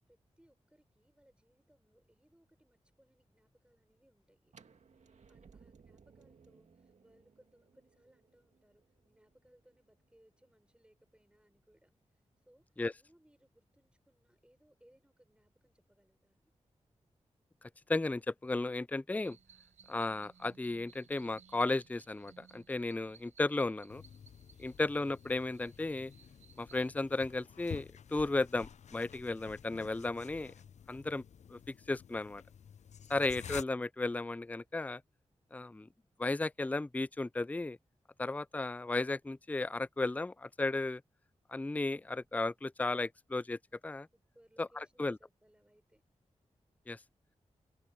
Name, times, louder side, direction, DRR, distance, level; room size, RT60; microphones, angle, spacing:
voice 1, 0.0-4.5 5.3-11.9 12.4-16.5 44.1-46.0, right 1 dB, 10° right, 6.4 m, -68 dB
sound 1, 4.5-10.3, right 5 dB, 70° right, 2.0 m, -63 dB
voice 2, 17.9-19.4 19.9-24.0 24.6-26.1 26.6-30.5 30.9-31.2 31.5-31.6 31.9-32.4 33.1-35.0 35.5-35.9 36.2-37.8 38.2-41.0 41.5-44.1 44.6-45.2 46.9-47.0, left 2 dB, 10° left, 0.4 m, -34 dB
sound 2, 19.1-26.9, right 6 dB, 90° right, 4.3 m, -62 dB
sound 3, 23.9-33.6, left 8 dB, 70° left, 0.5 m, -51 dB
open air
cardioid pair, 40°, 12 cm